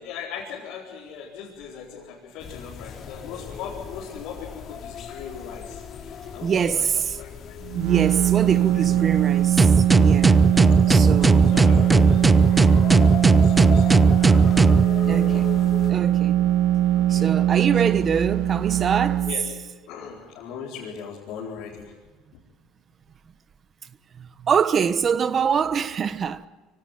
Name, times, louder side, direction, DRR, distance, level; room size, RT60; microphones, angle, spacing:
voice 1, 0.0-6.5 6.7-6.9 7.2-7.5 8.7-9.1 11.0-11.1 11.4-14.0 16.9-17.3 17.8-18.1 19.3-19.4 19.9-21.9, left 7 dB, 75° left, 4.5 m, -39 dB
sound 1, 2.4-15.9, left 7 dB, 50° left, 3.2 m, -37 dB
voice 2, 6.4-7.2 7.7-10.5 10.9-11.6 15.1-15.6 15.9-16.5 17.1-19.3 24.2-26.5, right 7 dB, 40° right, 1.2 m, -25 dB
sound 2, 7.6-19.3, right 12 dB, 80° right, 2.5 m, -21 dB
sound 3, 9.6-14.9, right 3 dB, 15° right, 0.8 m, -17 dB
24.5 x 18.0 x 9.3 m
supercardioid pair, 90°, 0 cm